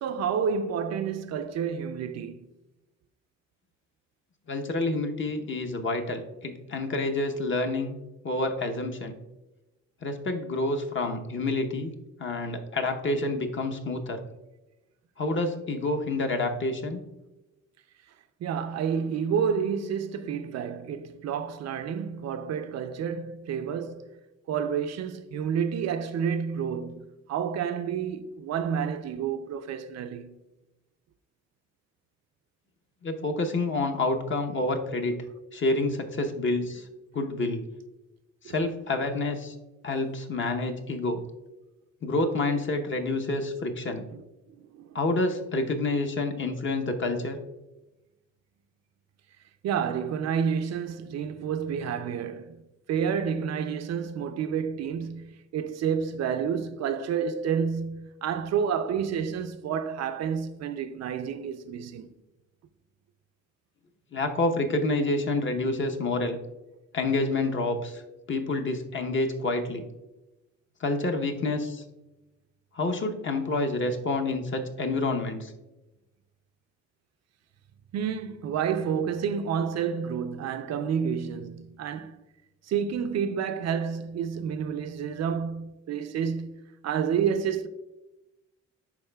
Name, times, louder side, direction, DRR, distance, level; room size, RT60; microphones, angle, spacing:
voice 1, 0.0-2.5 18.4-24.2 24.5-30.3 38.4-38.5 44.1-44.2 44.5-45.0 49.6-52.6 52.9-62.1 77.9-82.2 82.6-87.7, right 7 dB, 60° right, 0.5 m, -30 dB
voice 2, 4.5-8.0 8.2-9.1 10.0-14.2 15.2-17.0 33.0-35.2 35.5-36.9 37.1-37.6 38.4-39.5 39.8-41.2 42.0-44.0 44.9-47.4 64.1-66.4 66.9-68.0 68.3-69.8 70.8-71.8 72.7-75.5, left 2 dB, 40° left, 0.8 m, -28 dB
10.5 x 4.0 x 2.2 m
cardioid pair, 90°, 30 cm